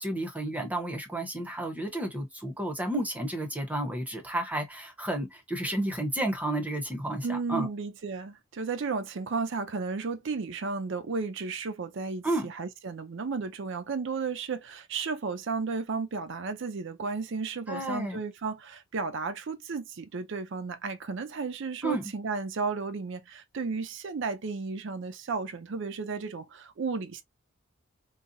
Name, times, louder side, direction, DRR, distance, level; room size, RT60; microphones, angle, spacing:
voice 1, 0.0-7.7 12.2-12.5 17.7-18.2 21.8-22.1, right 1 dB, 5° right, 0.7 m, -31 dB
voice 2, 7.2-27.2, right 4 dB, 60° right, 0.5 m, -33 dB
3.9 x 2.0 x 2.5 m
head